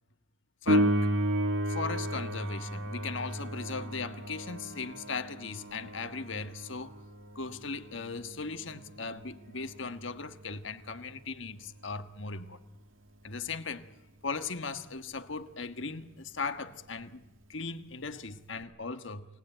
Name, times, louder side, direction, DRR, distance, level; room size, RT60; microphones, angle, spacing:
voice 1, 0.6-1.1 1.7-6.9 7.3-12.6 13.2-13.9 14.2-17.2 17.5-19.3, left 4 dB, 65° left, 1.5 m, -38 dB
Piano, 0.7-11.1 18.6-18.7, right 1 dB, 75° right, 2.3 m, -33 dB
28.5 x 18.0 x 9.2 m
head